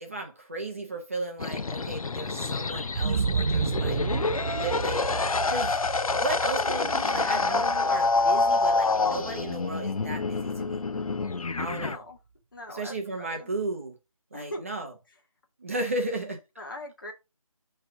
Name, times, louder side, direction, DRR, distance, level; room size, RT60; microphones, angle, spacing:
voice 1, 0.0-5.0 5.5-5.8 6.1-10.8 11.6-12.0 12.7-14.0 14.3-14.9 15.6-16.4, right 2 dB, 25° right, 0.7 m, -34 dB
sound 1, 1.4-12.0, left 3 dB, 75° left, 0.7 m, -27 dB
sound 2, 2.9-10.8 11.3-11.4, right 5 dB, 85° right, 0.4 m, -33 dB
voice 2, 11.7-12.2 12.5-13.5 14.3-14.6 16.6-17.1, left 1 dB, 35° left, 1.5 m, -41 dB
9.6 x 3.3 x 3.7 m
figure-of-eight pair, 170°, 18 cm